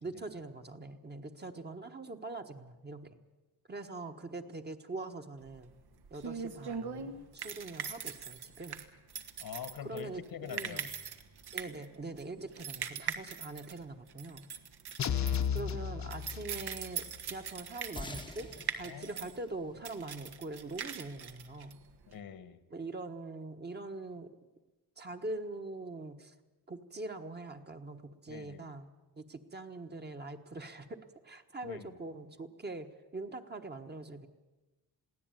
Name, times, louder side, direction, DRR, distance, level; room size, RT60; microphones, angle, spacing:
voice 1, 0.0-3.2 3.7-5.7 6.1-8.8 9.8-10.9 11.5-14.5 15.5-21.8 22.7-24.3 25.0-26.3 26.7-28.9 29.2-34.3, right 2 dB, 25° right, 6 dB, 1.3 m, -43 dB
sound 1, 5.5-22.2, right 7 dB, 75° right, 1.7 m, -42 dB
voice 2, 9.4-10.8 15.1-15.5 18.8-19.2 22.1-22.6 28.3-28.7 31.6-31.9, left 8 dB, 65° left, 13 dB, 1.5 m, -45 dB
sound 2, 15.0-16.9, left 8 dB, 45° left, 1.0 m, -33 dB
sound 3, 18.0-20.7, left 2 dB, 10° left, 0.9 m, -47 dB
22.0 x 16.5 x 9.2 m, 1.1 s
wide cardioid pair, 160°, 38 cm